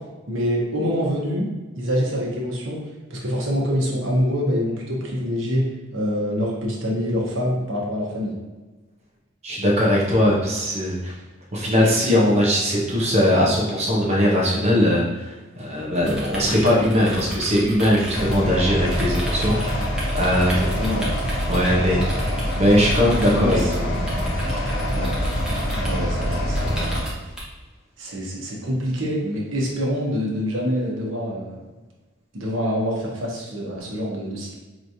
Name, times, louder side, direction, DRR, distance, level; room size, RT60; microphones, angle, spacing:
voice 1, 0.3-1.5 1.8-2.8 3.1-8.3 20.5-21.1 23.3-24.3 24.9-25.1 25.7-27.1 28.0-31.6 32.3-34.5, equal, 70° right, -2 dB, 1.0 m, -26 dB
voice 2, 9.4-11.1 11.5-20.8 21.5-22.2 22.5-24.1, equal, 30° right, -4 dB, 0.8 m, -20 dB
sound 1, 16.0-27.4, equal, 5° right, 0.9 m, -35 dB
sound 2, 18.1-27.0, equal, 75° left, 0.9 m, -25 dB
4.6 x 3.1 x 2.7 m, 1.2 s
head